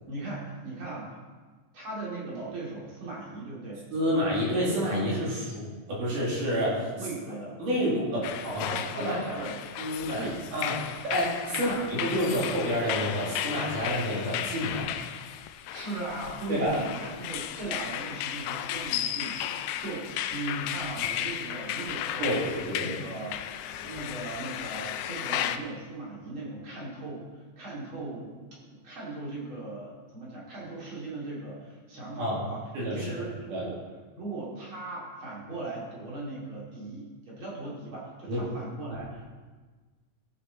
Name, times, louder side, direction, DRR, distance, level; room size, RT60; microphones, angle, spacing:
voice 1, 0.1-1.1 1.7-3.8 7.0-7.6 8.4-9.6 10.1-10.4 11.5-11.8 15.7-22.4 22.8-23.3 23.8-28.4 28.8-32.7 32.9-33.8 34.1-39.2, right 2 dB, 40° right, -5 dB, 3.3 m, -38 dB
voice 2, 3.9-6.9 7.6-8.3 8.5-8.6 9.0-9.2 9.8-14.9 16.5-16.8 22.2-22.9 32.2-32.4 32.7-33.1 33.5-33.6 38.3-38.4, equal, 80° right, -6 dB, 4.4 m, -29 dB
sound 1, 8.2-25.6, left 11 dB, 80° left, 1.9 m, -34 dB
15.0 x 7.0 x 4.1 m, 1.4 s
omnidirectional pair, 3.7 m